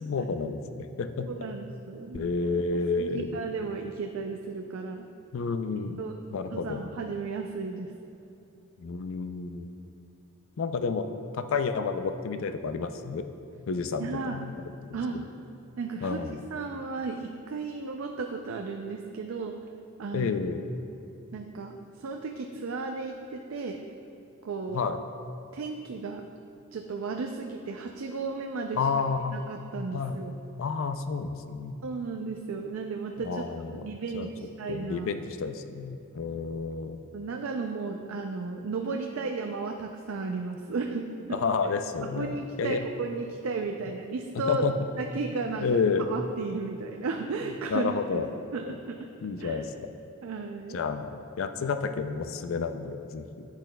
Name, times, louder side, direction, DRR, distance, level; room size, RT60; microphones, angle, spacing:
voice 1, 0.0-1.3 2.1-3.3 5.3-6.9 8.8-9.7 10.6-11.1 11.3-13.3 13.7-15.2 16.0-16.4 20.1-20.6 24.7-25.0 28.7-29.4 29.9-30.2 30.6-31.8 33.2-34.3 34.7-37.0 41.3-42.8 44.4-44.8 45.6-46.1 47.7-48.3 49.2-49.7 50.7-53.4, left 5 dB, 70° left, 9 dB, 0.4 m, -30 dB
voice 2, 1.3-5.1 6.0-6.2 6.5-7.9 14.0-14.4 14.9-15.2 15.8-16.2 16.5-19.6 20.0-20.3 21.3-23.8 24.4-24.8 25.5-26.4 26.7-28.9 29.3-30.4 31.8-33.5 33.7-35.1 37.1-41.4 42.0-44.7 45.0-45.8 46.1-48.3 48.5-49.1 49.4-49.6 50.2-50.8, right 4 dB, 75° right, 3 dB, 0.4 m, -34 dB
10.5 x 8.3 x 2.2 m, 2.8 s
head